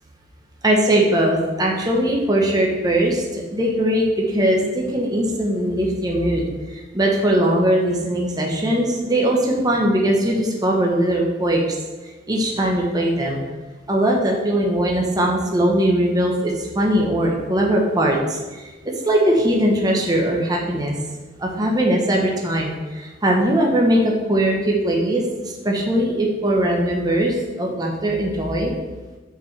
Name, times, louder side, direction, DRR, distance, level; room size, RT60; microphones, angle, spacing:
voice 1, 0.6-11.8 12.3-13.4 13.9-18.7 19.0-20.9 21.4-28.7, right 1 dB, 20° right, -1 dB, 0.9 m, -20 dB
6.9 x 4.5 x 4.5 m, 1.3 s
head